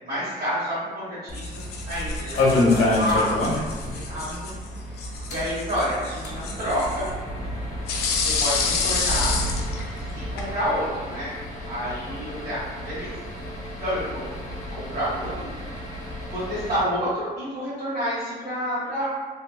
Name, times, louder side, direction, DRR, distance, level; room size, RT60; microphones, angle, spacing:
voice 1, 0.0-4.5 5.3-7.1 8.1-9.3 10.0-11.3 11.7-13.1 13.8-14.3 14.7-15.5 16.3-19.0, equal, 70° right, -12 dB, 1.4 m, -29 dB
sound 1, 1.3-10.5, left 4 dB, 75° left, 0.5 m, -30 dB
sound 2, 1.4-7.9, left 1 dB, ahead, 0.7 m, -45 dB
sound 3, 1.9-3.9 4.1-4.2 4.5-4.6 5.2-16.8, left 2 dB, 45° left, 0.8 m, -29 dB
3.2 x 2.8 x 2.3 m, 1.5 s
cardioid pair, 170°, 17 cm